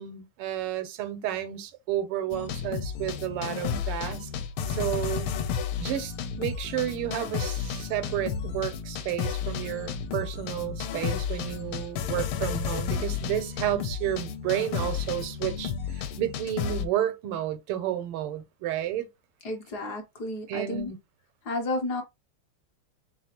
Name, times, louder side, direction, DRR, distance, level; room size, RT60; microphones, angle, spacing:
voice 1, 0.0-4.3 4.7-5.3 5.8-19.1 20.5-21.0, right 12 dB, 90° right, 1.7 m, -31 dB
sound 1, 2.3-16.8, left 7 dB, 80° left, 1.5 m, -32 dB
voice 2, 19.4-20.9 21.4-22.0, left 2 dB, 60° left, 1.2 m, -32 dB
3.9 x 3.8 x 2.8 m
omnidirectional pair, 2.4 m